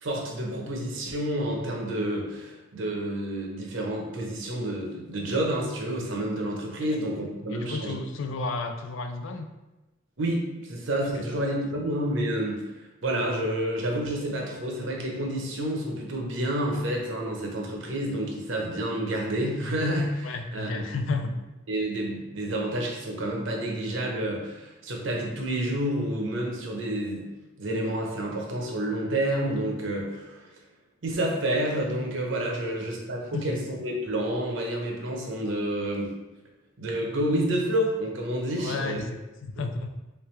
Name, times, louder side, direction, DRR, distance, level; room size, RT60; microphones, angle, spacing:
voice 1, 0.0-7.9 10.2-12.6 13.0-21.0 21.7-27.3 27.6-30.5 31.0-36.1 36.8-39.0, right 1 dB, 70° right, -1 dB, 0.8 m, -29 dB
voice 2, 7.5-9.5 11.1-11.2 20.2-21.3 32.7-32.9 33.3-33.6 38.6-39.9, left 3 dB, 70° left, 6 dB, 0.4 m, -32 dB
3.3 x 3.3 x 3.2 m, 1.0 s
head